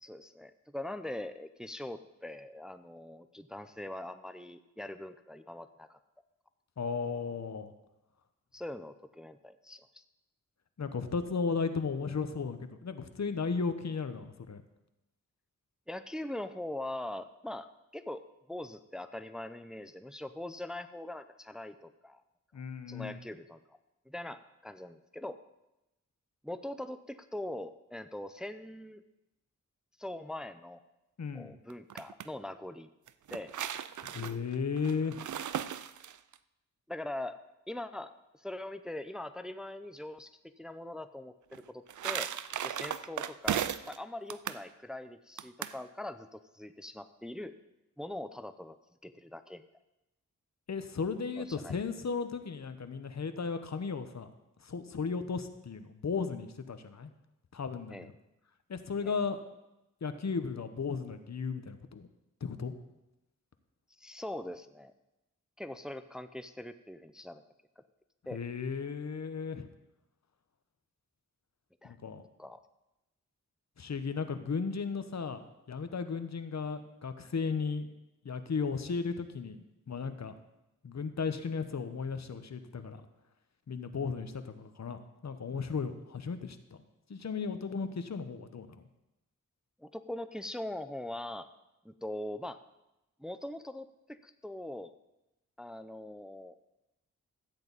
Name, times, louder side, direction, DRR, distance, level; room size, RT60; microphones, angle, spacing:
voice 1, 0.0-6.0 8.5-10.0 15.9-18.2 18.5-22.2 22.9-23.8 24.1-25.4 26.4-29.0 30.0-30.8 31.3-32.9 33.3-33.5 36.9-37.4 37.7-42.3 42.6-47.5 48.0-48.8 49.0-49.6 51.4-51.7 57.9-58.1 59.0-59.1 64.0-64.9 65.6-67.4 67.8-67.9 68.3-68.4 71.8-72.0 72.4-72.6 89.8-91.5 91.8-92.6 93.2-94.9 95.6-96.5, left 1 dB, ahead, 10 dB, 0.5 m, -42 dB
voice 2, 6.8-7.7 10.8-14.6 22.5-23.2 31.2-31.5 34.0-35.2 50.7-54.3 54.6-57.1 57.5-58.1 58.7-59.4 60.0-62.1 62.4-62.7 68.3-69.7 71.8-72.2 73.8-75.4 75.7-77.9 78.2-79.6 79.9-80.3 80.8-83.0 83.7-86.8 87.1-88.8, left 5 dB, 60° left, 10 dB, 1.0 m, -35 dB
sound 1, 31.7-32.3 33.1-36.4 41.5-44.0 44.3-44.6 45.4-45.8, right 9 dB, 65° right, 0.5 m, -36 dB
13.5 x 8.8 x 4.1 m, 0.94 s
cardioid pair, 55°, 32 cm